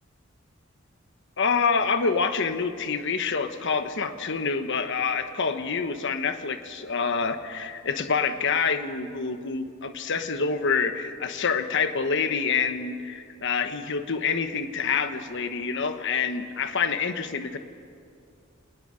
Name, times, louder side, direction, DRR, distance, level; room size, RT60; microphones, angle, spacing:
voice 1, 1.4-17.6, left 5 dB, 60° left, 9 dB, 1.1 m, -27 dB
27.0 x 19.5 x 5.1 m, 2.3 s
head